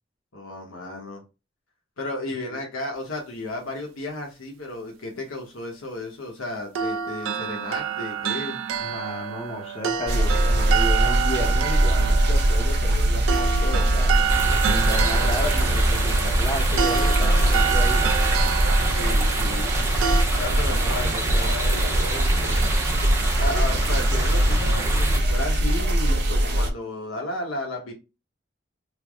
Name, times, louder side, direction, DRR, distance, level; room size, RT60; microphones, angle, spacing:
voice 1, 0.3-1.2 2.0-8.6 18.9-19.9 20.4-22.7 23.4-27.9, left 2 dB, 85° left, 0.9 m, -33 dB
sound 1, 6.8-20.2, right 8 dB, 85° right, 0.4 m, -28 dB
voice 2, 8.8-14.1 14.6-18.2, left 1 dB, 30° left, 0.7 m, -33 dB
sound 2, 10.1-26.7, right 1 dB, 50° right, 0.7 m, -22 dB
sound 3, 14.3-25.2, right 1 dB, 15° right, 0.4 m, -27 dB
3.3 x 2.0 x 3.4 m
head